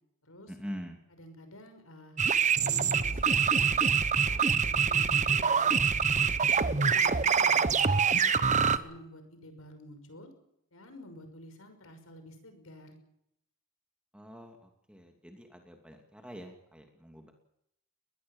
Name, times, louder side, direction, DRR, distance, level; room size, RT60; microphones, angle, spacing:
voice 1, 0.5-1.0 14.1-17.3, equal, 5° right, 3 dB, 2.8 m, -45 dB
voice 2, 1.1-3.7 4.2-7.7 8.1-10.3 10.7-13.0, equal, 80° left, 8 dB, 5.9 m, -50 dB
sound 1, 2.2-8.8, right 6 dB, 35° right, 1.0 m, -25 dB
22.0 x 20.5 x 7.4 m, 0.77 s
head